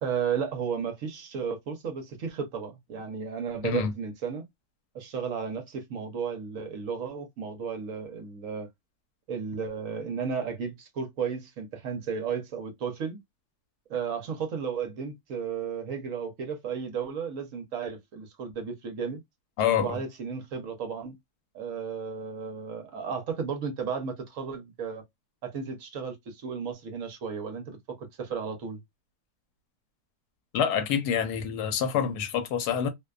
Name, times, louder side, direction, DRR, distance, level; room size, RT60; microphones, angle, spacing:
voice 1, 0.0-4.4 4.9-8.7 9.3-13.2 13.9-19.2 19.8-21.2 21.5-25.0 25.4-28.8, right 6 dB, 65° right, 0.9 m, -34 dB
voice 2, 19.6-20.0 30.5-32.9, left 8 dB, 85° left, 1.2 m, -26 dB
2.7 x 2.1 x 2.3 m
omnidirectional pair, 1.7 m